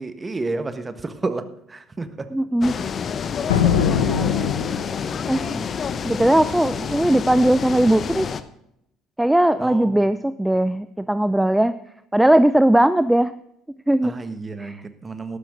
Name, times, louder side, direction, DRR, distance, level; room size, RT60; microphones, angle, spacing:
voice 1, 0.0-2.3 3.4-3.7 4.4-4.6 5.3-5.7 6.8-7.0 9.6-9.9 14.0-15.4, right 3 dB, 25° right, 11 dB, 1.5 m, -31 dB
voice 2, 2.3-2.7 5.3-5.4 6.0-8.3 9.2-11.7 12.1-13.3 13.9-14.1 14.6-14.8, right 1 dB, 5° right, 14 dB, 0.5 m, -18 dB
sound 1, 2.6-8.4, left 6 dB, 45° left, 0.9 m, -28 dB
sound 2, 3.5-5.2, left 7 dB, 85° left, 1.2 m, -21 dB
13.0 x 12.5 x 3.9 m, 0.78 s
hypercardioid pair, 60°, 0 cm